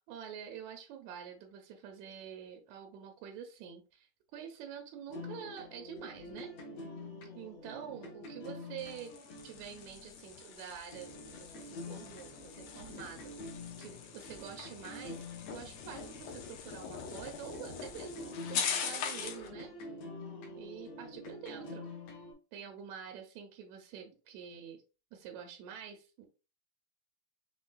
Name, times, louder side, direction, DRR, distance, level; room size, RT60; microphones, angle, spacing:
voice 1, 0.0-6.5 7.4-9.2 9.4-19.7 20.5-21.9 22.5-24.8 25.1-26.2, right 8 dB, 80° right, 3 dB, 1.8 m, -47 dB
sound 1, 5.1-17.1 17.5-22.3, left 2 dB, 60° left, 1.9 m, -47 dB
sound 2, 8.8-19.5, left 7 dB, 90° left, 2.6 m, -42 dB
5.2 x 3.9 x 2.3 m, 0.32 s
omnidirectional pair, 3.7 m